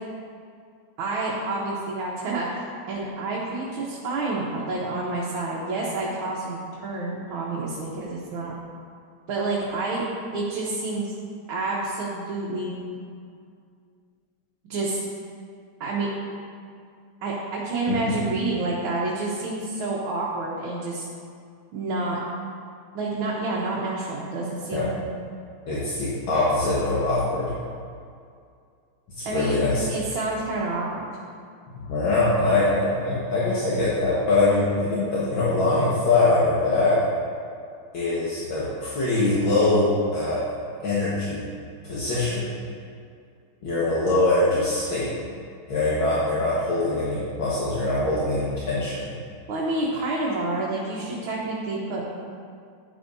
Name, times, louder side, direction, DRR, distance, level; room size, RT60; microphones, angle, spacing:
voice 1, 1.0-8.5 9.3-10.1 10.3-11.1 11.5-12.7 14.7-15.0 15.8-16.1 17.2-21.1 21.7-22.2 23.0-24.9 29.2-29.6 29.9-31.1 49.5-52.0, right 2 dB, 70° right, -5 dB, 1.9 m, -28 dB
voice 2, 25.7-27.5 29.2-29.8 31.9-37.0 37.9-40.4 40.8-41.4 41.8-42.5 43.6-45.1 45.7-49.0, left 2 dB, 70° left, -8 dB, 2.2 m, -23 dB
12.0 x 9.5 x 2.7 m, 2.3 s
omnidirectional pair, 2.3 m